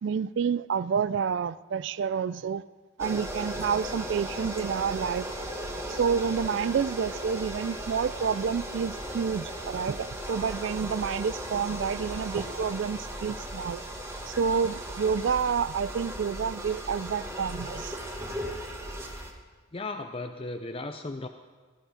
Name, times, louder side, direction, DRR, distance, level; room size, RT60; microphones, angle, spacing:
voice 1, 0.0-2.6 3.0-5.3 5.9-13.8 14.3-18.0, right 6 dB, 55° right, 0.3 m, -29 dB
sound 1, 3.0-19.3, right 1 dB, 10° right, 1.3 m, -37 dB
voice 2, 19.7-21.3, left 2 dB, 25° left, 0.5 m, -36 dB
18.5 x 12.5 x 5.0 m
head